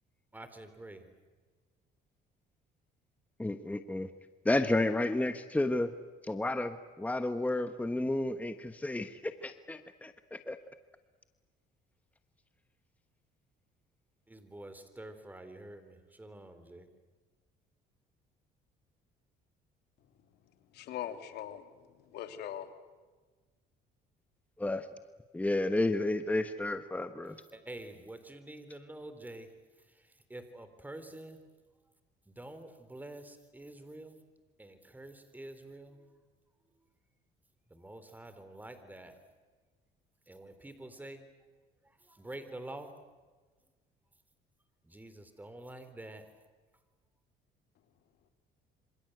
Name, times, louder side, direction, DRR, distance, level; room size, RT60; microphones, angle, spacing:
voice 1, 0.3-1.1 14.3-16.9 27.5-31.4 32.3-34.2 34.6-36.1 36.8-36.9 37.7-39.2 40.3-41.2 41.8-42.9 44.8-46.4, right 1 dB, 10° right, 10 dB, 3.7 m, -48 dB
voice 2, 3.4-4.1 4.4-5.9 6.3-10.6 24.6-24.9 25.3-27.4, left 2 dB, 10° left, 9 dB, 1.3 m, -31 dB
voice 3, 20.7-21.6 22.1-22.7, left 11 dB, 75° left, 8 dB, 2.8 m, -40 dB
27.0 x 26.0 x 8.0 m, 1.3 s
cardioid pair, 110°, 17 cm